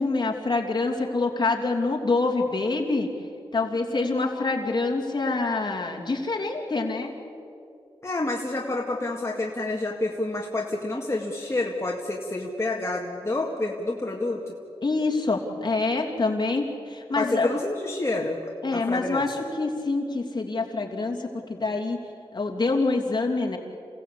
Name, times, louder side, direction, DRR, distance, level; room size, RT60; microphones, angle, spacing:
voice 1, 0.0-3.1 3.5-7.1 14.8-17.5 18.6-22.0 22.3-23.6, left 3 dB, 45° left, 0 dB, 2.9 m, -26 dB
voice 2, 8.0-14.5 17.2-18.4 18.7-19.2, left 2 dB, 25° left, -1 dB, 2.0 m, -28 dB
28.0 x 17.0 x 8.6 m, 2.6 s
wide cardioid pair, 105°, 10 cm